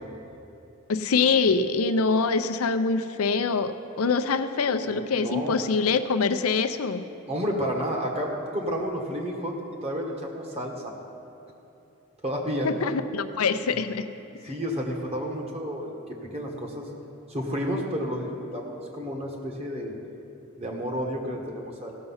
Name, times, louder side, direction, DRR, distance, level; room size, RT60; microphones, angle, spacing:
voice 1, 0.9-7.0 12.6-14.1, left 4 dB, 75° left, 10 dB, 0.6 m, -24 dB
voice 2, 4.7-5.6 7.3-10.9 12.2-12.7 14.4-16.9 17.3-19.9 20.6-22.0, equal, 30° right, 0 dB, 1.4 m, -31 dB
16.5 x 6.7 x 5.6 m, 2.7 s
head